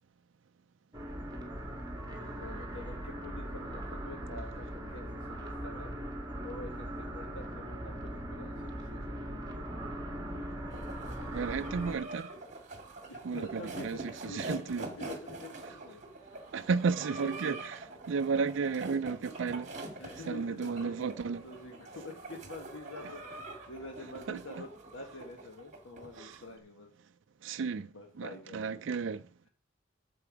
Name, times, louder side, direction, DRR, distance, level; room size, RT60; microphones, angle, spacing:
sound 1, 0.9-12.0, right 1 dB, 20° right, 2.3 m, -40 dB
voice 1, 2.3-6.0 6.4-9.6 13.1-16.4 16.8-17.6 18.3-18.4 20.0-26.9 27.9-29.1, left 2 dB, 85° left, 1.3 m, -47 dB
sound 2, 10.7-26.5, right 2 dB, 40° right, 2.0 m, -45 dB
voice 2, 11.3-12.3 13.2-14.0 14.2-14.9 16.5-17.7 18.1-19.7 20.3-21.4 24.3-24.6 26.2-26.4 27.4-27.9 28.2-29.2, right 5 dB, 75° right, 0.4 m, -33 dB
11.5 x 6.9 x 5.0 m
head